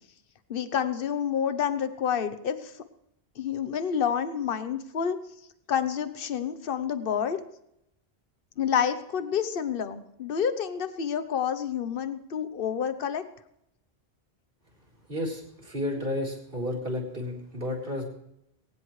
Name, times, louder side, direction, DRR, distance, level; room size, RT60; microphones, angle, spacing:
voice 1, 0.5-2.7 3.4-5.2 5.7-7.4 8.6-13.2, left 8 dB, 60° left, 11 dB, 1.1 m, -28 dB
voice 2, 15.1-18.0, left 1 dB, 55° right, 0 dB, 4.3 m, -32 dB
20.5 x 18.5 x 3.3 m, 0.79 s
omnidirectional pair, 1.1 m